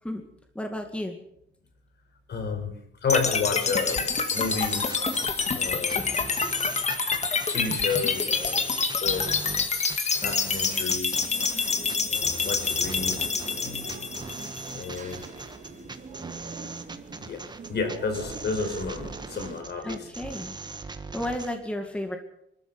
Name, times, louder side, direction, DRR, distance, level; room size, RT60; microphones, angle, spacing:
voice 1, 0.5-1.1 19.8-20.6 21.1-22.2, left 1 dB, 5° left, 4 dB, 2.2 m, -32 dB
voice 2, 2.3-2.7 3.0-5.1 5.5-6.0 7.5-9.5 10.2-11.3 12.1-13.3 13.5-13.9 14.7-15.2 17.2-17.4 17.7-20.1, left 4 dB, 60° left, 5 dB, 4.9 m, -31 dB
sound 1, 3.1-15.1, left 5 dB, 35° left, 2.0 m, -27 dB
sound 2, 3.6-21.6, right 3 dB, 20° right, 1.5 m, -40 dB
sound 3, 11.2-19.6, right 4 dB, 40° right, 2.9 m, -43 dB
25.0 x 13.5 x 7.8 m, 0.77 s
wide cardioid pair, 155°, 20 cm